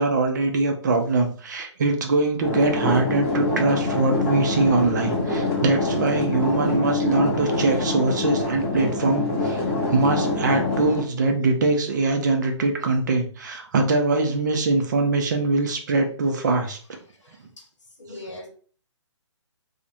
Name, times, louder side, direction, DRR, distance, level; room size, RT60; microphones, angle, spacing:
voice 1, 0.0-9.6 9.9-16.8, right 3 dB, 40° right, 0.4 m, -22 dB
sound 1, 2.4-11.0, left 2 dB, 25° left, 0.6 m, -25 dB
voice 2, 17.1-17.7 18.0-18.5, left 2 dB, 75° left, 1.0 m, -41 dB
2.4 x 2.0 x 2.7 m
figure-of-eight pair, 135°, 16 cm